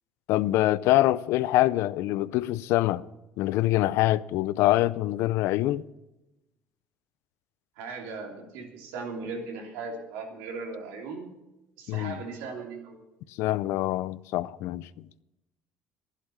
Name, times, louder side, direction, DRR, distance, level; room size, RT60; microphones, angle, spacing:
voice 1, 0.3-3.0 3.4-5.8 11.9-12.2 13.4-14.9, left 15 dB, 75° left, 0.5 m, -24 dB
voice 2, 7.8-11.3 11.8-13.0, right 4 dB, 80° right, 3.1 m, -38 dB
11.5 x 11.0 x 7.1 m
supercardioid pair, 75°, 5 cm